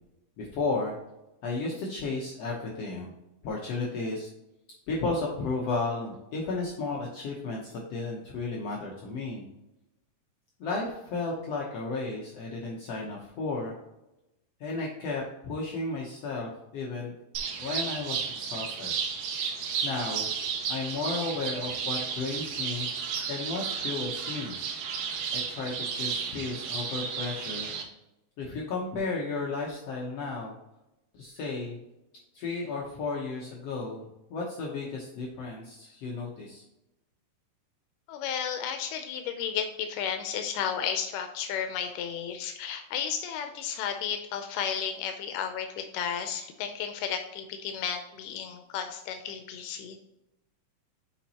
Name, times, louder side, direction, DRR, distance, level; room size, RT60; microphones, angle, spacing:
voice 1, 0.4-0.9 1.4-3.1 3.4-4.3 4.9-9.4 10.6-13.7 14.6-17.1 17.6-18.9 19.8-20.3 20.7-22.9 23.3-24.5 25.3-27.7 28.4-30.5 31.1-31.8 32.3-36.6, left 3 dB, 65° left, -3 dB, 1.6 m, -33 dB
sound 1, 17.3-27.8, right 6 dB, 80° right, 2.5 m, -33 dB
voice 2, 38.1-50.0, left 8 dB, 85° left, 6 dB, 2.1 m, -33 dB
7.1 x 5.1 x 2.8 m, 0.91 s
omnidirectional pair, 3.7 m